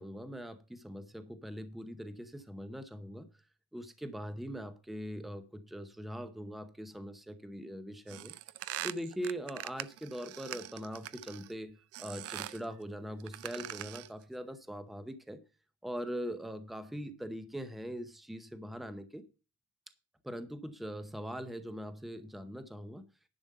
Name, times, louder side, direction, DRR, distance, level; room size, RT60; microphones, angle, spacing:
voice 1, 0.0-3.3 3.7-8.3 8.8-15.4 15.8-19.2 20.2-23.1, equal, ahead, 0.8 m, -42 dB
sound 1, 8.1-11.5 11.9-12.6 13.2-14.2, right 14 dB, 55° right, 0.5 m, -42 dB
11.0 x 5.1 x 6.7 m
cardioid pair, 165°, 29 cm